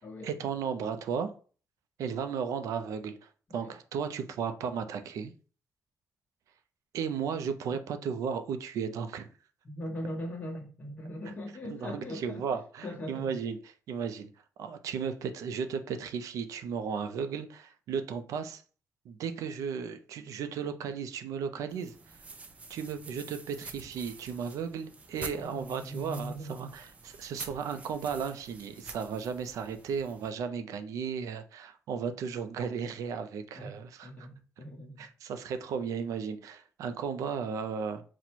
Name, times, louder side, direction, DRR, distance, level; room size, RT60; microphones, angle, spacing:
voice 1, 0.2-1.3 2.0-3.2 3.5-5.3 6.9-9.3 11.7-13.6 13.9-14.3 14.6-18.6 19.1-22.2 22.7-34.3 35.0-38.0, right 6 dB, 85° right, 0.4 m, -35 dB
voice 2, 9.6-12.4 12.8-13.4 25.4-26.7 33.6-33.7 34.0-35.1, equal, 30° left, 0.9 m, -40 dB
sound 1, 21.7-30.3, right 3 dB, 25° right, 0.4 m, -47 dB
4.1 x 2.1 x 4.4 m
wide cardioid pair, 175°, 5 cm